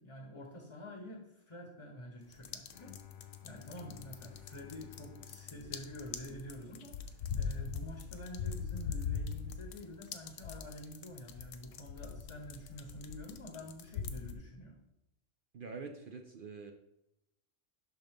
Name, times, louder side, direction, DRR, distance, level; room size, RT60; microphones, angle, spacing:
voice 1, 0.0-14.7, equal, 25° left, 1 dB, 0.9 m, -48 dB
sound 1, 2.3-14.3, left 6 dB, 80° left, 1.0 m, -41 dB
Bowed string instrument, 2.7-6.9, left 11 dB, 60° left, 0.5 m, -55 dB
voice 2, 15.5-16.7, right 4 dB, 55° right, 5 dB, 0.6 m, -45 dB
11.0 x 3.8 x 3.6 m, 0.84 s
omnidirectional pair, 1.3 m